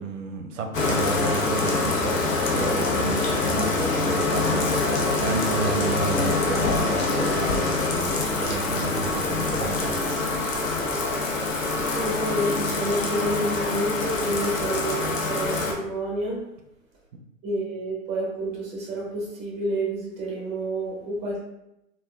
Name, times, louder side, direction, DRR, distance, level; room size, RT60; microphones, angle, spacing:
voice 1, 0.0-10.5, right 4 dB, 65° right, 5 dB, 0.6 m, -32 dB
Bathtub (filling or washing), 0.7-15.7, left 3 dB, 70° left, 0.7 m, -25 dB
voice 2, 11.8-16.4 17.4-21.4, right 1 dB, 15° right, -4 dB, 0.9 m, -29 dB
3.4 x 2.3 x 2.2 m, 0.87 s
hypercardioid pair, 125°, 41 cm